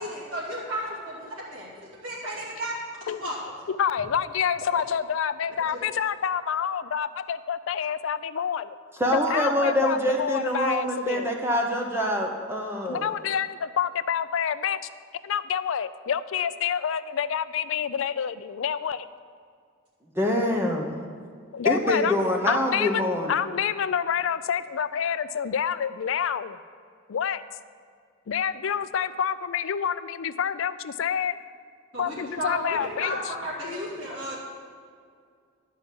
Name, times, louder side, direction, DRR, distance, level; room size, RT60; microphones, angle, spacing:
voice 1, 0.0-1.7 2.0-2.7 3.0-3.3 5.7-5.8 31.9-34.4, equal, 85° right, -7 dB, 2.6 m, -33 dB
voice 2, 3.7-8.8 9.1-11.3 12.8-14.8 15.2-19.1 21.5-22.2 22.4-23.0 23.3-26.6 27.1-27.4 28.3-31.4 32.0-33.2, left 8 dB, 65° left, 14 dB, 0.4 m, -28 dB
voice 3, 9.0-13.1 20.2-20.9 21.6-23.3, left 1 dB, 10° right, 0 dB, 0.9 m, -25 dB
11.0 x 5.5 x 7.5 m, 2.1 s
head